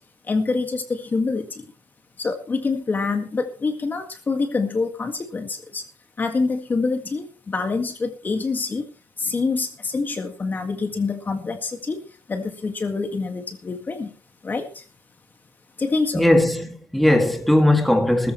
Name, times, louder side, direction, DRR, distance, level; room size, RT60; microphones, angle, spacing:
voice 1, 0.3-1.7 2.2-5.9 6.2-8.9 9.2-14.1 14.4-14.8 15.8-16.3, left 4 dB, 20° left, 1.9 m, -26 dB
voice 2, 16.1-18.3, left 1 dB, ahead, 2.1 m, -18 dB
18.5 x 14.5 x 3.1 m
cardioid pair, 150°, 8 cm